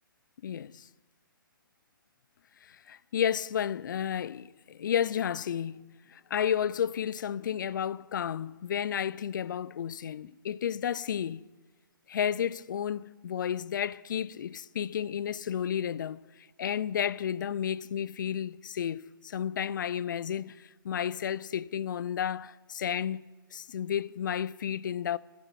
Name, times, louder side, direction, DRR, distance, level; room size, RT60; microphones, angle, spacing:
voice 1, 0.4-0.9 2.6-11.4 12.1-16.2 16.6-23.2 23.5-25.2, left 9 dB, 60° left, 0.4 m, -32 dB
10.5 x 9.9 x 8.0 m
hypercardioid pair, 135°, 12 cm